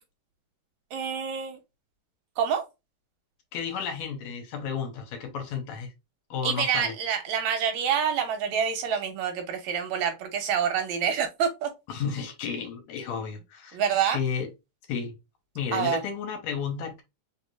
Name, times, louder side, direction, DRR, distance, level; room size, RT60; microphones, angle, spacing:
voice 1, 0.9-1.6 2.4-2.6 6.4-11.7 13.7-14.2 15.7-16.0, right 7 dB, 75° right, 1.9 m, -27 dB
voice 2, 3.5-5.9 6.3-6.9 11.9-13.8 14.1-14.5 14.9-15.2 15.6-17.0, left 6 dB, 75° left, 2.1 m, -32 dB
4.4 x 3.6 x 2.4 m
omnidirectional pair, 3.5 m